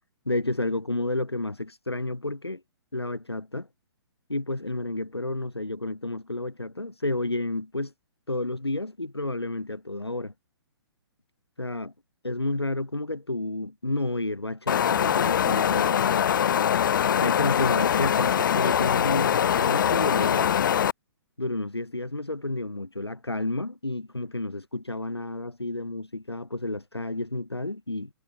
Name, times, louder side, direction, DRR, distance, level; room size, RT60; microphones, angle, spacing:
voice 1, 0.2-2.6 2.9-3.7 4.3-7.9 8.3-10.3 11.6-11.9 12.2-16.2 17.1-20.5 21.4-28.1, left 2 dB, 85° left, 3.2 m, -31 dB
Wind, 14.7-20.9, left 9 dB, 55° left, 1.1 m, -23 dB
figure-of-eight pair, 125°, 13 cm